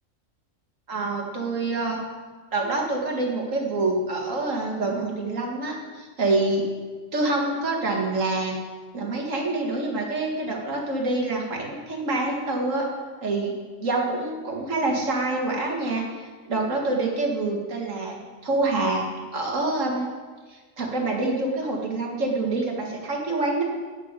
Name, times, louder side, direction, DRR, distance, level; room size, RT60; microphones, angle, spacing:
voice 1, 0.9-2.0 2.5-6.6 7.1-8.6 8.9-12.9 13.2-13.5 13.8-16.0 16.5-18.2 18.4-19.0 19.3-20.1 20.5-23.6, right 2 dB, 65° right, -1 dB, 2.2 m, -26 dB
9.2 x 8.0 x 6.7 m, 1.4 s
omnidirectional pair, 1.4 m